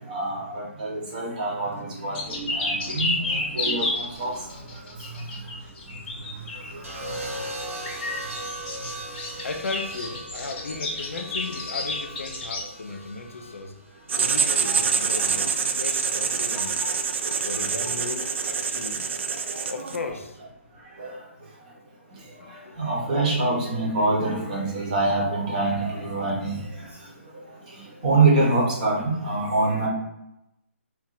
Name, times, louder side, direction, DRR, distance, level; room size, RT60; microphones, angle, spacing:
voice 1, 0.1-0.4 0.8-1.7 2.0-3.8 4.2-4.3 21.0-21.1 22.8-26.6 28.0-29.9, right 3 dB, 40° right, 1.1 m, -24 dB
sound 1, 2.2-6.7 7.8-12.6, left 2 dB, 40° left, 0.8 m, -31 dB
voice 2, 2.8-3.1 5.6-5.7 7.0-7.9 9.4-13.8 14.2-16.7 17.4-19.1 19.7-20.4 22.2-23.0, left 3 dB, 75° left, 0.4 m, -36 dB
sound 2, 6.8-15.0 16.2-16.6, right 1 dB, 90° right, 1.0 m, -39 dB
Writing, 14.1-20.1, right 5 dB, 60° right, 0.3 m, -26 dB
2.8 x 2.1 x 4.0 m
figure-of-eight pair, 140°, 7 cm